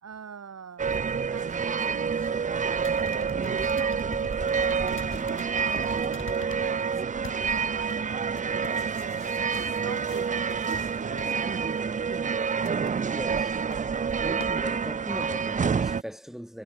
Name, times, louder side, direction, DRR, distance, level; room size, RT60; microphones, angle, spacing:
voice 1, 0.0-7.0 7.4-11.7 12.3-12.7, right 7 dB, 50° right, 2.8 m, -44 dB
sound 1, 0.8-16.0, right 6 dB, 25° right, 0.5 m, -28 dB
sound 2, 1.0-15.1, left 16 dB, 90° left, 3.2 m, -54 dB
sound 3, 2.8-6.8 7.2-7.8 8.1-8.2 9.3-9.8 10.5-10.7 11.0-11.3, left 5 dB, 35° left, 1.6 m, -44 dB
voice 2, 11.8-12.1 13.1-13.6 14.2-16.6, equal, ahead, 4.3 m, -39 dB
supercardioid pair, 60°, 33 cm